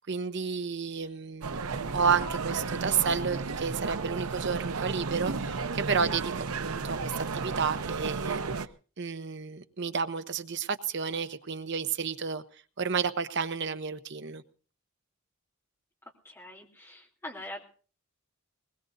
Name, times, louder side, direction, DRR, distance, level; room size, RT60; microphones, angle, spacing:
voice 1, 0.1-1.6 1.9-8.4 9.0-12.4 12.8-14.4, right 6 dB, 55° right, 0.9 m, -31 dB
sound 1, 1.4-8.7, right 4 dB, 90° right, 0.8 m, -33 dB
voice 2, 16.2-17.6, left 1 dB, 10° left, 3.2 m, -43 dB
21.0 x 20.5 x 2.7 m
head